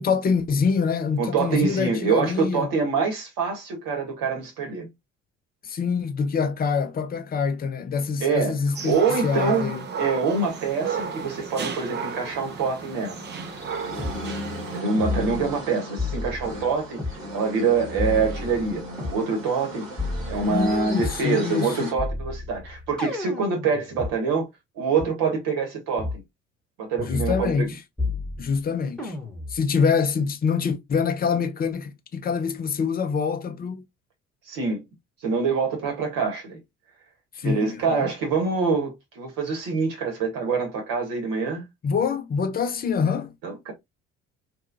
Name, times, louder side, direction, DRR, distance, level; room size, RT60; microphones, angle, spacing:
voice 1, 0.0-2.7 5.6-9.0 9.2-9.8 20.5-21.9 27.0-27.8 28.4-29.1 29.5-33.8 37.4-38.1 41.8-43.3, left 5 dB, 25° left, 0.6 m, -25 dB
voice 2, 1.2-4.9 8.2-13.2 14.7-17.0 17.3-19.9 20.3-24.5 24.8-26.1 26.8-27.7 34.5-34.8 35.2-36.6 37.4-41.6 43.4-43.7, right 4 dB, 60° right, 1.2 m, -25 dB
sound 1, 8.7-14.8, right 6 dB, 30° right, 0.6 m, -33 dB
sound 2, 10.3-21.9, equal, 85° right, 0.9 m, -37 dB
sound 3, 14.0-14.2 15.0-15.7 16.0-17.2 18.0-19.2 20.0-21.2 22.0-24.1 25.0-25.1 26.0-26.2 27.0-27.7 28.0-28.6 29.0-29.6, left 3 dB, ahead, 1.1 m, -31 dB
2.7 x 2.3 x 2.5 m
figure-of-eight pair, 50°, 38 cm